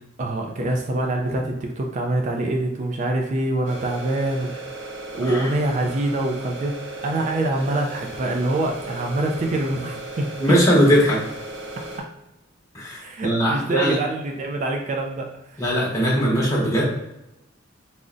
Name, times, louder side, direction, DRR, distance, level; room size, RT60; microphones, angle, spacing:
voice 1, 0.2-4.9 5.1-10.3 13.0-15.3 15.5-15.7, right 2 dB, 40° right, 1 dB, 0.3 m, -25 dB
sound 1, 3.6-12.0, right 2 dB, 80° right, 0.9 m, -36 dB
voice 2, 10.4-11.2 12.7-14.0 15.6-16.8, equal, 15° left, -5 dB, 0.9 m, -20 dB
3.7 x 2.1 x 2.4 m, 0.90 s
head